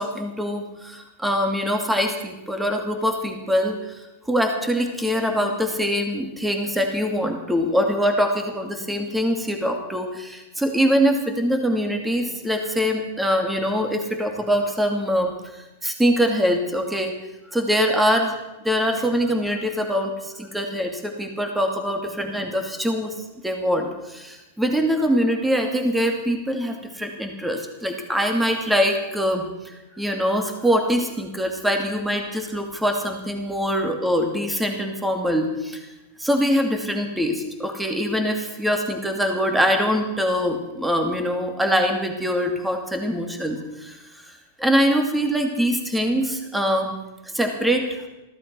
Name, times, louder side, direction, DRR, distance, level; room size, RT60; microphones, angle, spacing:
voice 1, 0.0-3.8 4.3-15.3 15.8-17.1 17.5-18.3 18.6-23.1 23.4-35.8 36.2-44.0 44.3-47.0 47.3-48.0, equal, 5° right, 4 dB, 2.6 m, -23 dB
15.5 x 12.5 x 6.2 m, 0.99 s
hypercardioid pair, 100°, 0 cm